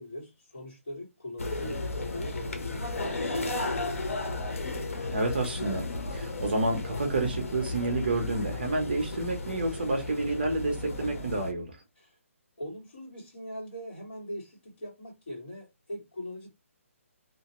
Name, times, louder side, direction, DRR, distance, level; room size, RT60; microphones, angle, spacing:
voice 1, 0.0-4.4 11.9-12.2 12.6-16.5, left 1 dB, 40° left, 1.7 m, -41 dB
sound 1, 1.4-11.5, left 2 dB, 75° left, 0.8 m, -34 dB
voice 2, 5.1-5.8 6.1-11.8, right 2 dB, 45° right, 0.7 m, -29 dB
2.8 x 2.1 x 2.9 m
hypercardioid pair, 175°, 8 cm